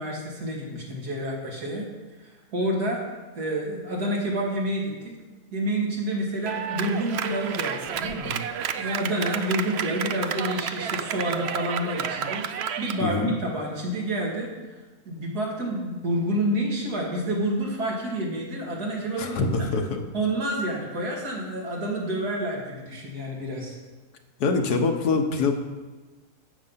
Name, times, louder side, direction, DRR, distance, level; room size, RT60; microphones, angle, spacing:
voice 1, 0.0-1.9 2.2-3.0 3.3-5.1 5.5-8.4 8.7-14.5 15.0-19.7 20.1-23.7, right 1 dB, 85° right, -2 dB, 2.9 m, -29 dB
Clapping, 6.5-13.0, right 8 dB, 60° right, 0.7 m, -31 dB
voice 2, 13.0-13.3 19.2-20.0 24.4-25.5, left 4 dB, 85° left, 4 dB, 1.7 m, -24 dB
11.5 x 7.9 x 5.7 m, 1.2 s
omnidirectional pair, 1.6 m